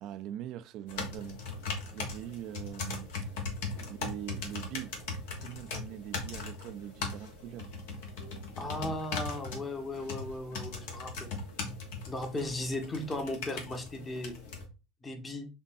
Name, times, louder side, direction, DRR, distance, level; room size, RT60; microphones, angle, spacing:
voice 1, 0.0-1.4 1.9-3.1 3.9-5.0 5.4-7.7, right 11 dB, 55° right, 0.4 m, -42 dB
sound 1, 0.9-14.6, left 4 dB, 70° left, 1.1 m, -39 dB
voice 2, 8.6-11.4 12.1-14.4 15.0-15.5, left 1 dB, 20° left, 1.0 m, -36 dB
5.2 x 2.2 x 2.6 m
hypercardioid pair, 85°, 0 cm